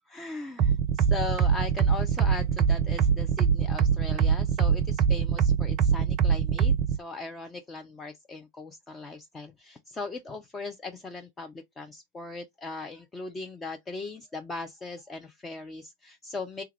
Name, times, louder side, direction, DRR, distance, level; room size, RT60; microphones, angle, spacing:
voice 1, 0.1-16.6, left 3 dB, 15° left, 0.5 m, -39 dB
sound 1, 0.6-6.9, right 7 dB, 40° right, 0.5 m, -23 dB
3.4 x 2.3 x 3.1 m
figure-of-eight pair, 90°, 0 cm